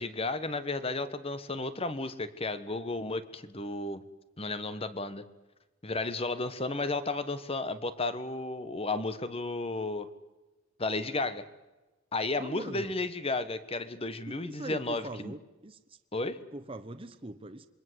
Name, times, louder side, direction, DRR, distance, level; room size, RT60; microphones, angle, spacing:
voice 1, 0.0-4.0 4.4-5.3 5.8-10.1 10.8-11.4 12.1-15.3 16.1-16.4, left 2 dB, 25° left, 13 dB, 1.3 m, -33 dB
voice 2, 12.3-13.0 14.3-16.0 16.5-17.7, right 1 dB, 25° right, 9 dB, 1.0 m, -42 dB
27.0 x 22.5 x 8.0 m, 1.1 s
head